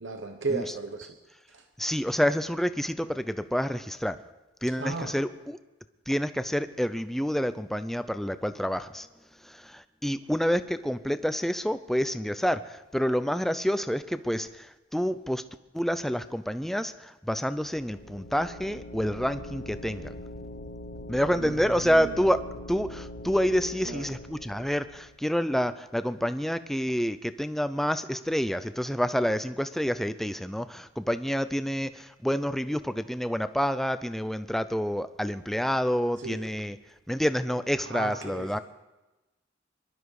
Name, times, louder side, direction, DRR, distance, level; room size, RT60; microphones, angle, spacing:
voice 1, 0.0-1.1 1.5-1.6 4.8-5.1 21.4-22.2 23.8-24.1 36.2-36.4 37.9-38.6, right 3 dB, 70° right, 6 dB, 1.1 m, -35 dB
voice 2, 1.8-4.2 4.6-5.6 6.1-9.1 9.4-15.4 15.7-20.1 21.1-22.4 22.7-36.8 37.1-38.6, equal, ahead, 12 dB, 0.5 m, -28 dB
sound 1, 17.5-25.2, left 1 dB, 50° left, 1.0 m, -42 dB
22.5 x 12.5 x 4.8 m, 1.1 s
head